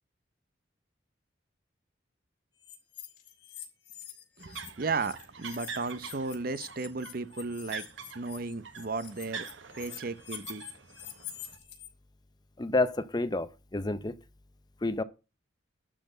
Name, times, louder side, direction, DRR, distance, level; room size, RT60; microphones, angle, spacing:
sound 1, 2.6-4.7 5.0-11.9, left 12 dB, 60° left, 3.2 m, -46 dB
voice 1, 4.4-7.8 8.1-9.5 9.8-10.6, right 3 dB, 50° right, 0.7 m, -35 dB
sound 2, 4.4-11.6, right 5 dB, 80° right, 1.1 m, -45 dB
voice 2, 12.6-14.1 14.8-15.0, left 2 dB, 20° left, 0.6 m, -29 dB
12.0 x 4.4 x 7.8 m
head